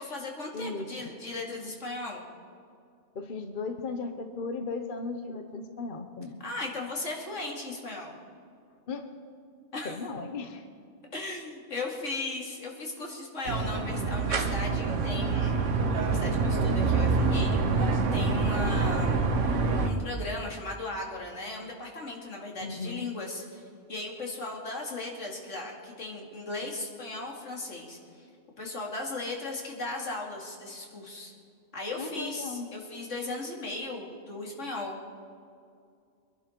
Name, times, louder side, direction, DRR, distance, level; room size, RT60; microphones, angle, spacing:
voice 1, 0.0-2.2 6.4-8.2 9.7-9.9 11.1-19.2 19.8-28.3 28.6-31.3 31.7-35.0, left 2 dB, 80° left, -1 dB, 2.8 m, -37 dB
voice 2, 0.5-0.9 3.1-6.4 8.9-9.1 9.8-10.6 22.6-23.1 32.0-32.7, left 4 dB, 45° left, 6 dB, 1.0 m, -36 dB
sound 1, 13.5-19.9, right 4 dB, 90° right, 1.5 m, -26 dB
24.0 x 11.0 x 4.5 m, 2.3 s
omnidirectional pair, 1.2 m